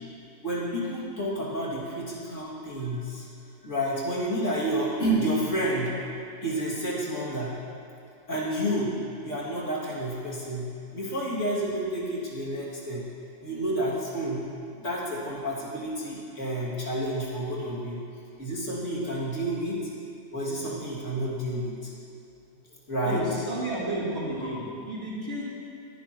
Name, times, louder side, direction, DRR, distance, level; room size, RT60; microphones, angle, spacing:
voice 1, 0.4-3.2 3.6-6.0 6.4-7.5 8.3-8.9 9.2-13.0 13.4-14.5 14.8-18.0 18.4-19.9 20.3-21.7 22.9-23.2, right 1 dB, 75° left, -7 dB, 2.9 m, -30 dB
voice 2, 23.1-25.4, right 1 dB, 55° right, -9 dB, 3.7 m, -32 dB
20.5 x 10.5 x 3.1 m, 2.5 s
omnidirectional pair, 1.3 m